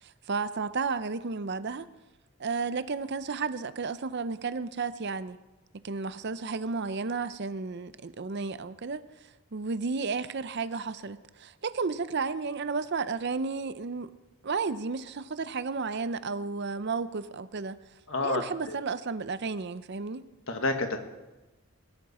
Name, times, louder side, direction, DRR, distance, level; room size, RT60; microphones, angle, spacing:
voice 1, 0.0-1.9 2.4-5.4 5.8-9.0 9.5-14.1 14.4-17.8 18.2-20.2, right 4 dB, 50° right, 0.6 m, -32 dB
voice 2, 18.1-18.8 20.5-21.0, left 3 dB, 60° left, 1.7 m, -29 dB
20.5 x 12.5 x 4.3 m
head